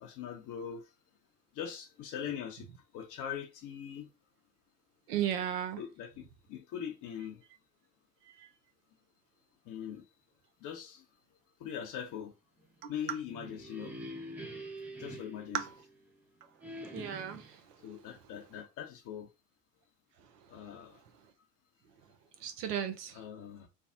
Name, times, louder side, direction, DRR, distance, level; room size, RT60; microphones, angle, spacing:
voice 1, 0.0-0.9 1.5-2.7 2.9-4.1 5.8-7.4 9.7-10.1 10.6-11.0 11.6-12.3 12.9-13.9 15.0-15.7 17.8-19.3 20.5-21.0 23.1-23.7, left 8 dB, 40° left, 0.6 m, -41 dB
voice 2, 5.1-5.8 15.5-15.6 16.9-17.4 22.4-23.1, right 9 dB, 80° right, 0.7 m, -34 dB
sound 1, 13.1-16.1 16.6-17.6, right 1 dB, 5° right, 0.3 m, -45 dB
3.2 x 2.0 x 2.6 m
hypercardioid pair, 75°, 47 cm